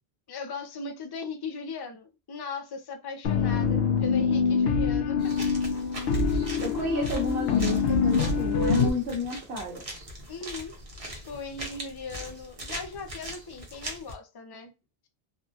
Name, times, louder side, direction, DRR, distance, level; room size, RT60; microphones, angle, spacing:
voice 1, 0.3-5.3 10.3-10.8 11.1-14.7, left 4 dB, 35° left, 0.4 m, -38 dB
sound 1, 3.2-8.9, left 5 dB, 75° left, 0.8 m, -25 dB
sound 2, 5.2-14.1, right 1 dB, 35° right, 0.9 m, -41 dB
voice 2, 6.6-9.8, left 2 dB, 80° right, 1.1 m, -31 dB
3.4 x 2.3 x 2.7 m
omnidirectional pair, 1.1 m